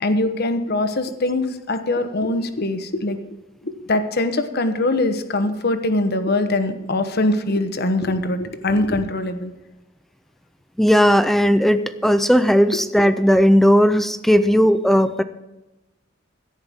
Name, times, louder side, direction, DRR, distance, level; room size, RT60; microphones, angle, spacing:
voice 1, 0.0-3.2 3.6-9.5, left 2 dB, 55° left, 9 dB, 1.0 m, -22 dB
voice 2, 10.8-15.2, equal, ahead, 12 dB, 0.4 m, -16 dB
17.0 x 11.0 x 3.6 m, 1.0 s
head